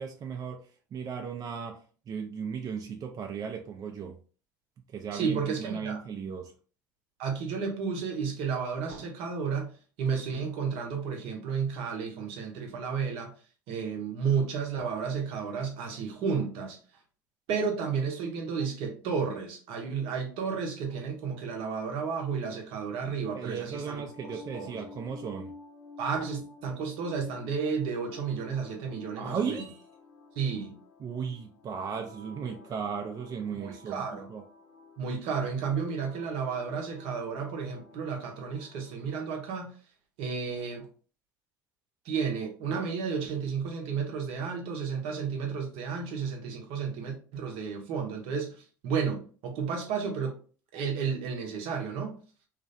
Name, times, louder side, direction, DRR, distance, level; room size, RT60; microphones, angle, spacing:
voice 1, 0.0-1.8 2.1-4.2 4.9-6.5 23.3-25.5 29.2-29.8 31.0-34.4, right 6 dB, 35° right, 0.4 m, -36 dB
voice 2, 5.1-6.0 7.2-9.7 10.0-13.3 13.7-16.8 17.5-24.0 24.3-24.8 26.0-29.6 30.4-30.7 33.6-34.3 35.0-39.7 40.2-40.9 42.0-50.3 50.7-52.2, right 6 dB, 65° right, 0.7 m, -32 dB
sound 1, 23.7-39.6, left 4 dB, 55° left, 0.8 m, -51 dB
2.4 x 2.0 x 2.5 m
hypercardioid pair, 75°, 10 cm